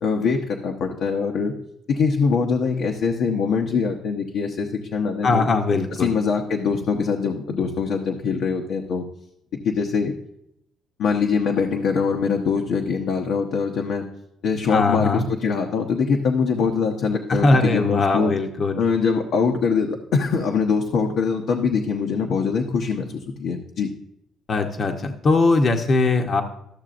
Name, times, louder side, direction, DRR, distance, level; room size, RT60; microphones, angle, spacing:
voice 1, 0.0-1.5 1.9-5.5 5.9-9.0 9.6-10.1 11.0-14.0 14.4-18.3 18.8-23.9, left 5 dB, 75° left, 2 dB, 0.8 m, -23 dB
voice 2, 5.2-6.1 14.7-15.3 17.3-18.8 24.5-26.4, left 3 dB, 45° left, 4 dB, 0.8 m, -20 dB
13.5 x 6.7 x 2.5 m, 0.79 s
cardioid pair, 110°, 0 cm